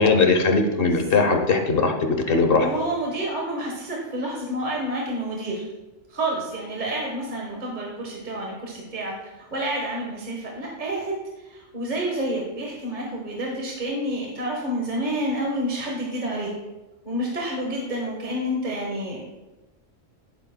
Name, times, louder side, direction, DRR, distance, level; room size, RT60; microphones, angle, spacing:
voice 1, 0.0-2.7, left 4 dB, 50° left, 5 dB, 1.0 m, -20 dB
voice 2, 0.8-1.3 2.6-5.7 6.1-11.1 11.4-16.5 17.0-19.2, right 1 dB, 35° right, -2 dB, 1.3 m, -29 dB
11.0 x 9.1 x 2.2 m, 1.1 s
omnidirectional pair, 1.3 m